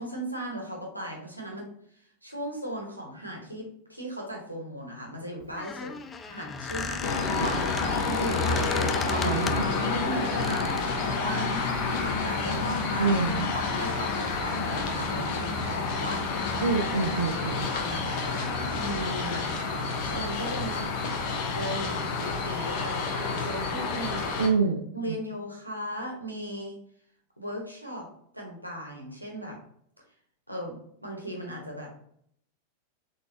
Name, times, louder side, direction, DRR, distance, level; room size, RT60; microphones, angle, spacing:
voice 1, 0.0-1.7 2.2-5.9 6.3-7.4 8.0-9.3 9.8-11.6 12.0-13.2 13.5-16.6 17.1-19.5 20.0-20.9 21.5-24.3 24.9-26.8 27.4-28.1 28.3-29.6 30.5-31.9, equal, 90° right, -1 dB, 1.0 m, -37 dB
Squeak, 5.4-9.8 10.4-10.9, left 3 dB, 20° left, 0.3 m, -34 dB
sound 1, 7.0-24.5, left 4 dB, 45° left, 0.7 m, -29 dB
voice 2, 9.2-9.6 13.0-13.5 16.6-17.7 24.4-25.2, right 4 dB, 70° right, 3 dB, 0.4 m, -27 dB
4.0 x 3.4 x 2.7 m, 0.67 s
figure-of-eight pair, 90°, 0 cm